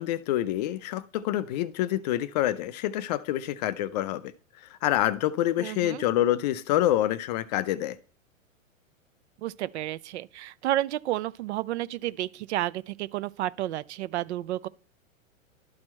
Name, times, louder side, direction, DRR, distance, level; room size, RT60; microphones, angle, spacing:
voice 1, 0.0-4.3 4.7-8.0, left 13 dB, 35° left, 0.4 m, -27 dB
voice 2, 5.6-6.0 9.4-14.7, right 14 dB, 55° right, 0.6 m, -31 dB
12.0 x 4.4 x 4.3 m
hypercardioid pair, 120°, 40 cm